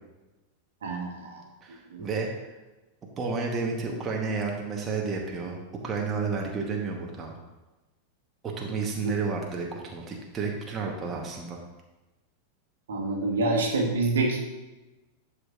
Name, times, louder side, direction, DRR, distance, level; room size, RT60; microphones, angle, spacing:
voice 1, 0.8-1.4 1.9-2.0 12.9-14.4, right 2 dB, 65° right, 0 dB, 1.4 m, -27 dB
voice 2, 1.6-2.3 3.2-7.3 8.4-11.6, right 4 dB, 25° right, 0 dB, 1.3 m, -31 dB
11.0 x 6.2 x 2.6 m, 1.1 s
figure-of-eight pair, 90°, 0 cm